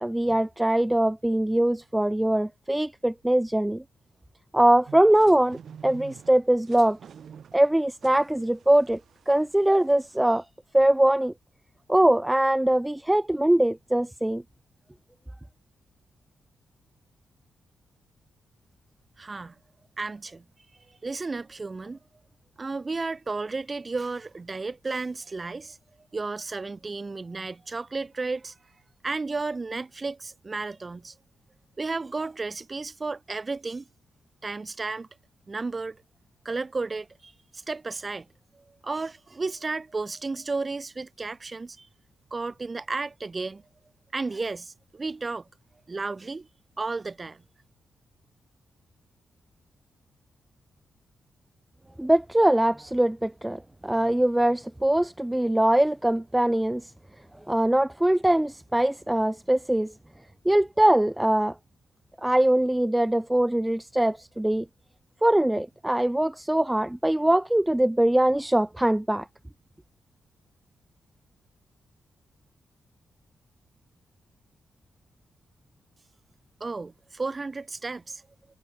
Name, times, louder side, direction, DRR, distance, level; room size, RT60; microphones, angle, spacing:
voice 1, 0.0-3.8 4.5-5.6 5.8-7.0 7.5-9.0 9.3-10.4 10.7-11.3 11.9-14.4 52.0-56.9 57.5-59.9 60.5-61.5 62.2-64.7 65.2-69.3, right 1 dB, 10° right, 0.3 m, -22 dB
sound 1, 4.9-10.2, right 7 dB, 65° right, 4.8 m, -49 dB
voice 2, 19.2-19.5 20.0-20.4 20.9-22.0 22.6-25.8 26.1-28.6 29.0-31.1 31.8-33.9 34.4-35.1 35.5-36.0 36.4-38.3 38.5-41.9 42.3-43.6 44.1-45.5 45.9-46.5 46.8-47.4 76.6-78.2, right 3 dB, 40° right, 2.2 m, -33 dB
supercardioid pair, 45°, 0 cm